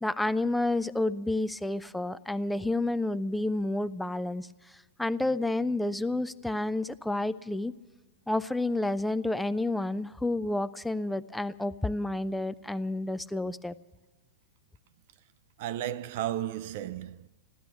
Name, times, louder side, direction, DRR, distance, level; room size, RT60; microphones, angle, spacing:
voice 1, 0.0-7.7 8.3-13.7, left 2 dB, 5° left, 0.4 m, -30 dB
voice 2, 15.6-17.3, right 12 dB, 50° right, 0.5 m, -34 dB
15.0 x 13.0 x 6.9 m
figure-of-eight pair, 100°, 0 cm